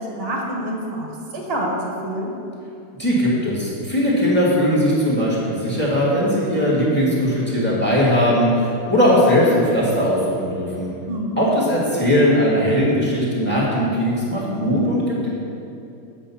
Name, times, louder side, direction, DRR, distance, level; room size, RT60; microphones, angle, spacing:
voice 1, 0.0-1.7 2.0-2.3 11.1-11.4, right 1 dB, 35° right, -1 dB, 1.2 m, -27 dB
voice 2, 3.0-10.9 11.4-15.3, equal, 5° left, -5 dB, 2.0 m, -19 dB
8.3 x 5.2 x 7.2 m, 2.7 s
omnidirectional pair, 2.4 m